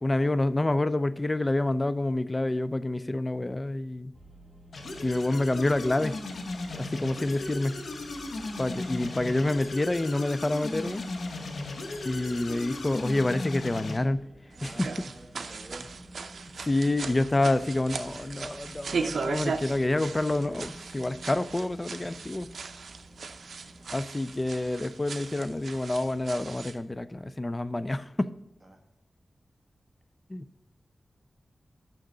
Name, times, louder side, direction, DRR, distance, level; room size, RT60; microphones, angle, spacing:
voice 1, 0.0-4.1 5.0-6.2 6.7-7.8 8.6-11.0 12.0-14.3 14.6-14.9 16.6-22.5 23.9-28.3 30.3-30.5, left 2 dB, 25° left, 0.4 m, -28 dB
sound 1, 4.1-24.0, right 1 dB, 5° right, 1.1 m, -51 dB
sound 2, 4.7-14.0, left 2 dB, 80° left, 1.1 m, -36 dB
forest footsteps, 14.5-26.8, right 4 dB, 85° right, 0.5 m, -38 dB
voice 2, 14.6-15.9 28.6-28.8, right 1 dB, 20° right, 1.6 m, -48 dB
6.6 x 5.8 x 6.4 m
wide cardioid pair, 90°, 0 cm